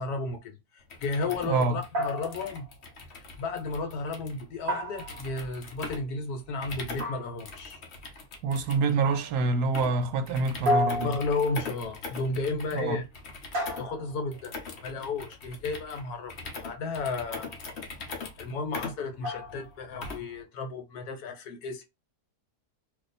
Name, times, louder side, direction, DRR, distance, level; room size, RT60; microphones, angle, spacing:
voice 1, 0.0-2.7 3.4-7.8 11.0-13.0 13.7-14.6 14.8-17.5 18.4-21.9, left 3 dB, 75° left, 1.2 m, -33 dB
sound 1, 0.8-20.4, left 4 dB, 55° left, 0.8 m, -42 dB
voice 2, 1.4-1.8 8.4-11.2 12.7-13.0, right 4 dB, 75° right, 1.1 m, -26 dB
sound 2, 1.9-2.7 4.7-5.5 7.0-7.6 9.0-9.4 10.7-11.6 13.5-14.3 17.3-17.7 19.2-19.7, left 1 dB, 45° right, 0.8 m, -32 dB
2.6 x 2.3 x 4.1 m
omnidirectional pair, 1.8 m